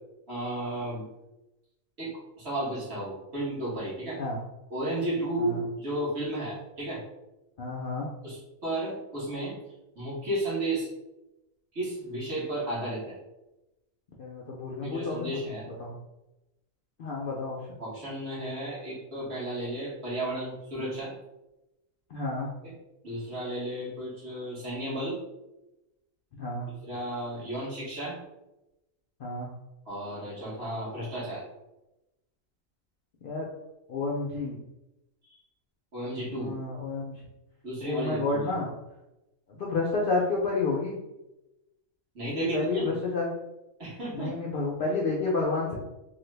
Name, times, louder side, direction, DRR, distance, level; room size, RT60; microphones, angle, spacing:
voice 1, 0.3-1.1 2.0-2.1 2.4-4.2 4.7-7.0 8.2-9.5 9.9-10.9 11.7-13.2 14.8-15.7 17.8-21.1 22.6-22.7 23.0-25.2 26.8-28.1 29.9-31.4 35.9-36.5 37.6-38.4 42.1-42.9 43.8-44.3, right 1 dB, 55° right, -8 dB, 1.5 m, -33 dB
voice 2, 7.6-8.1 14.2-15.3 15.8-16.0 17.0-17.6 22.1-22.5 26.4-26.7 29.2-29.5 33.2-33.5 33.9-34.6 36.4-37.1 37.8-38.7 39.5-41.0 42.5-43.3 44.1-45.7, left 3 dB, 65° left, -3 dB, 0.5 m, -30 dB
3.1 x 2.2 x 3.2 m, 0.96 s
omnidirectional pair, 1.4 m